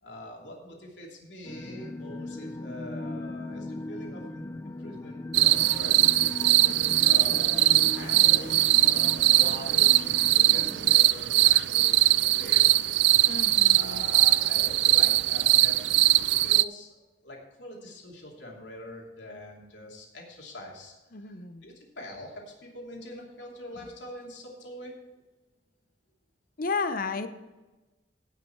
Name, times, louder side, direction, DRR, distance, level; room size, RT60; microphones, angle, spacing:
voice 1, 0.0-6.6 7.0-12.6 13.7-17.0 17.2-24.9, left 1 dB, 85° left, -1 dB, 2.8 m, -44 dB
sound 1, 1.4-11.0, left 2 dB, 15° left, 0.3 m, -39 dB
sound 2, 5.3-16.6, right 16 dB, 70° right, 0.3 m, -21 dB
voice 2, 6.6-7.1 13.2-14.1 21.1-21.6 26.6-27.3, left 4 dB, 55° left, 10 dB, 0.8 m, -33 dB
17.0 x 6.0 x 4.6 m, 1.2 s
head